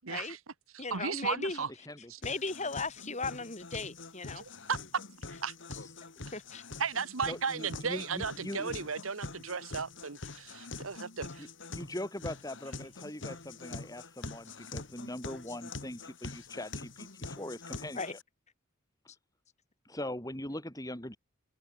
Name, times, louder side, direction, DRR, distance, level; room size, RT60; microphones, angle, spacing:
voice 1, 0.0-0.4 0.7-1.7 4.4-4.8 5.4-5.5 6.8-11.5, right 5 dB, 85° right, 1.3 m, -35 dB
voice 2, 0.8-1.6 2.2-4.4 6.3-6.6 18.0-18.1, left 3 dB, 35° left, 7.3 m, -37 dB
sound 1, 2.2-18.2, left 3 dB, 60° left, 2.2 m, -45 dB
voice 3, 7.2-8.8 11.4-18.2 19.8-21.2, left 1 dB, 15° left, 6.2 m, -41 dB
open air
head